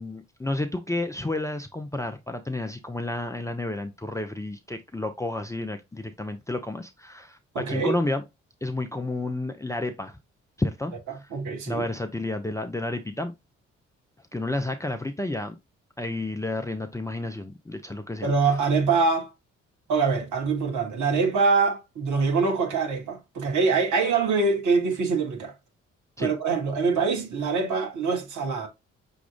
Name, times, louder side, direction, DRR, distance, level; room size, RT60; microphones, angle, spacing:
voice 1, 0.0-8.2 8.6-10.2 10.6-10.9 11.7-13.3 14.3-15.5 16.0-18.3 26.2-26.3, left 2 dB, 10° left, 0.6 m, -31 dB
voice 2, 7.5-7.9 11.3-11.8 18.2-19.3 19.9-25.5 26.2-28.7, right 4 dB, 55° right, 1.4 m, -24 dB
6.1 x 2.4 x 3.4 m
figure-of-eight pair, 40°, 36 cm